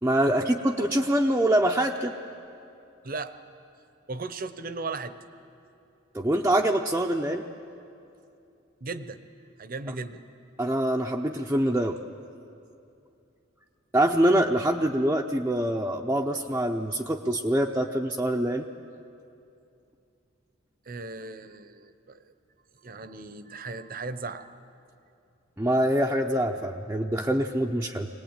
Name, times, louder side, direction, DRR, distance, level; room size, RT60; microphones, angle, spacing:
voice 1, 0.0-2.1 6.1-7.4 10.6-12.0 13.9-18.6 25.6-28.1, right 1 dB, 10° right, -1 dB, 0.7 m, -24 dB
voice 2, 3.0-3.4 4.1-5.1 8.8-9.2 9.6-10.2 20.9-22.3 22.8-24.5, right 3 dB, 45° right, 12 dB, 0.9 m, -36 dB
23.5 x 18.5 x 8.9 m, 2.6 s
head